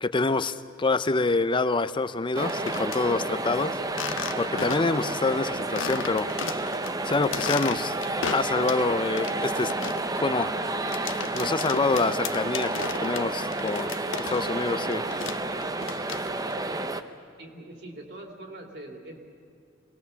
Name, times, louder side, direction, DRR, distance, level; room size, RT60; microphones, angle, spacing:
voice 1, 0.0-3.8 4.4-6.3 7.0-8.0 8.3-9.7 10.2-10.5 11.3-15.1, left 3 dB, 25° left, 13 dB, 0.6 m, -26 dB
sound 1, 2.3-3.0 3.9-5.0 5.3-5.4 5.8-6.9 7.2-8.9 9.2-14.7 14.9-16.5, left 7 dB, 70° left, 0.7 m, -35 dB
sound 2, 2.3-17.0, right 2 dB, 20° right, 0.7 m, -30 dB
voice 2, 17.4-19.2, right 1 dB, 55° right, 1 dB, 3.0 m, -42 dB
24.5 x 19.5 x 7.0 m, 2.5 s
head